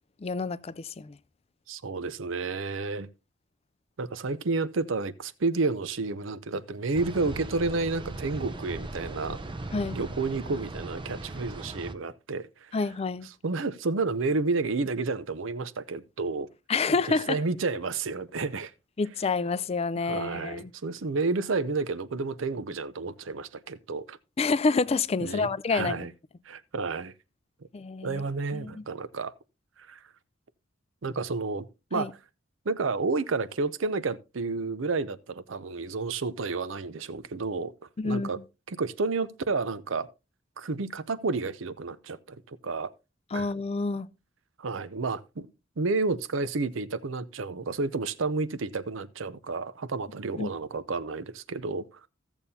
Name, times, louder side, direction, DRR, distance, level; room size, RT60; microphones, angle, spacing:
voice 1, 0.2-1.2 9.7-10.0 12.7-13.3 16.7-17.4 19.0-20.7 24.4-26.0 27.7-28.2 28.5-28.8 31.9-32.1 38.0-38.4 43.3-44.1 50.4-50.5, left 4 dB, 30° left, 0.4 m, -28 dB
voice 2, 1.7-3.1 4.0-9.4 9.9-12.8 13.4-16.5 17.1-18.7 20.0-24.2 25.2-26.1 26.5-27.1 28.0-29.3 29.9-30.0 31.0-31.7 31.9-32.1 32.7-37.7 38.0-38.4 38.7-40.1 40.6-42.9 43.3-43.5 44.6-45.5 45.8-52.0, right 3 dB, 70° right, 0.6 m, -30 dB
sound 1, 6.9-11.9, right 2 dB, 25° right, 0.6 m, -38 dB
15.5 x 7.1 x 2.7 m
head